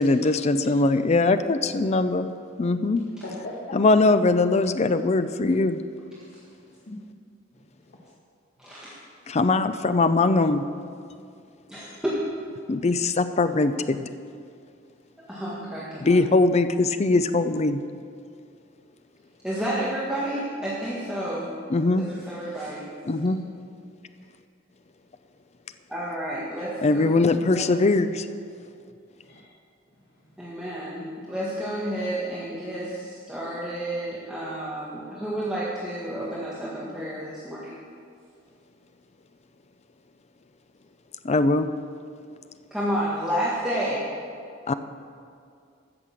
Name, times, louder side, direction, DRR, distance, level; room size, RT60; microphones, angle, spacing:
voice 1, 0.0-2.3 2.6-3.0 3.7-5.8 9.3-10.7 12.7-14.1 16.0-17.8 21.7-22.1 23.0-23.4 26.8-28.3 41.2-41.7 44.7-44.8, left 3 dB, 35° left, 11 dB, 0.5 m, -21 dB
voice 2, 3.2-3.8 6.9-7.0 7.5-8.1 29.2-29.4 29.9-30.6, left 1 dB, 55° left, -4 dB, 1.7 m, -41 dB
voice 3, 8.6-9.0 11.7-12.2 15.3-16.2 19.4-21.5 22.0-22.9 25.9-27.0 27.5-27.7 30.4-37.7 42.7-44.1, right 1 dB, 5° right, -8 dB, 1.7 m, -30 dB
14.0 x 6.7 x 7.5 m, 2.3 s
head